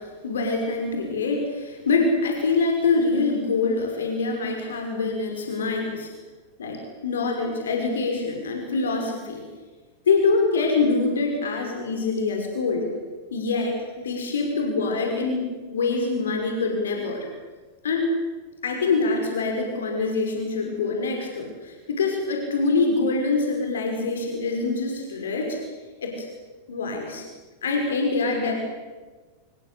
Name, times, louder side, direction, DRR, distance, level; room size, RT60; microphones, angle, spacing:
voice 1, 0.0-6.1 6.6-9.5 10.1-12.9 13.3-17.3 17.8-18.1 18.6-25.6 26.0-26.3 26.7-27.2 27.6-28.5, left 3 dB, 65° left, 2 dB, 5.9 m, -25 dB
26.0 x 21.5 x 8.5 m, 1.3 s
figure-of-eight pair, 90°, 0 cm